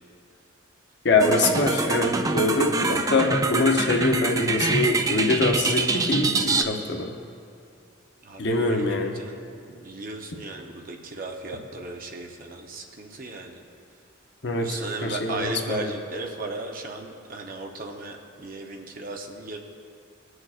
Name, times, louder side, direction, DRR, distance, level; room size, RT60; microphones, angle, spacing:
voice 1, 1.0-7.1 8.4-9.1 14.4-14.7 15.0-15.9, left 2 dB, 60° left, 2 dB, 0.8 m, -23 dB
sound 1, 1.2-6.6, right 3 dB, 15° right, 0.3 m, -25 dB
voice 2, 8.2-9.4 9.8-13.6 14.6-19.6, right 2 dB, 45° right, 2 dB, 0.7 m, -36 dB
18.0 x 6.4 x 2.4 m, 2.4 s
head